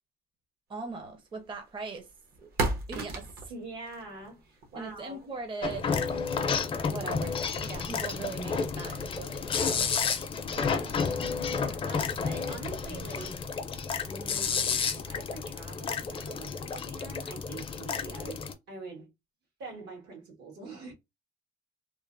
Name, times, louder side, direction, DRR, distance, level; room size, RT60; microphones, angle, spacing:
voice 1, 0.7-2.1 2.4-2.5 2.9-3.5 4.8-6.2 6.9-7.3 7.6-9.9, right 4 dB, 30° right, 0.6 m, -40 dB
sound 1, 1.0-11.3, right 2 dB, 65° right, 0.9 m, -41 dB
voice 2, 3.5-5.2 7.0-7.3 10.5-13.5 14.0-19.1 19.6-20.9, right 3 dB, 80° right, 1.5 m, -45 dB
sound 2, 5.6-18.5, left 5 dB, 35° left, 0.5 m, -31 dB
3.0 x 2.0 x 2.4 m
cardioid pair, 110°, 17 cm